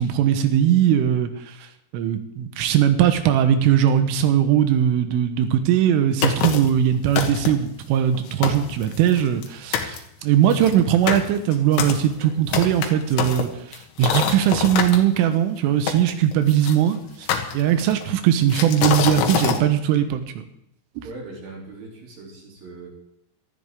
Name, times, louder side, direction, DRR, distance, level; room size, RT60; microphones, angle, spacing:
voice 1, 0.0-1.5 1.9-17.3 17.5-20.5 21.0-21.1, right 10 dB, 90° right, 9 dB, 3.6 m, -20 dB
sound 1, 6.2-6.8 7.2-7.7 8.1-8.2 8.4-9.5 9.7-10.0 10.5-15.0 15.9-16.8 17.3-18.0 18.5-19.6, left 8 dB, 75° left, 3.6 m, -25 dB
voice 2, 21.0-22.9, right 2 dB, 50° right, -1 dB, 4.6 m, -40 dB
19.5 x 13.5 x 3.7 m, 0.76 s
omnidirectional pair, 5.7 m